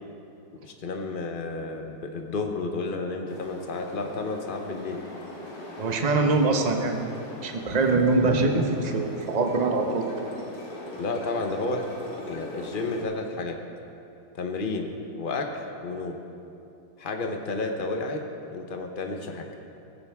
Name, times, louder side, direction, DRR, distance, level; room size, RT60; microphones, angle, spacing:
voice 1, 0.6-5.0 11.0-11.8 12.3-13.6 14.3-14.9 15.2-16.2 17.0-18.2 18.5-19.5, left 3 dB, 55° left, 4 dB, 0.5 m, -31 dB
sound 1, 3.3-13.0, left 1 dB, 85° left, 3.4 m, -40 dB
voice 2, 5.8-7.1 7.4-10.1, right 3 dB, 50° right, 3 dB, 0.4 m, -23 dB
16.0 x 15.5 x 3.6 m, 2.7 s
omnidirectional pair, 2.4 m